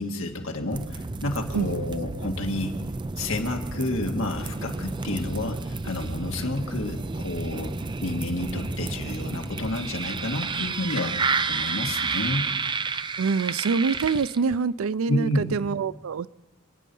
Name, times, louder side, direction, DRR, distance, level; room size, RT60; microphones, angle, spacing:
voice 1, 0.0-2.7 3.2-7.7 8.0-12.4 15.1-15.4, left 1 dB, 75° left, 3 dB, 1.8 m, -30 dB
sound 1, 0.7-14.6, right 4 dB, 20° right, 0.4 m, -31 dB
voice 2, 1.5-1.8 13.2-16.3, right 5 dB, 85° right, 18 dB, 0.4 m, -25 dB
28.0 x 9.4 x 5.5 m, 1.2 s
head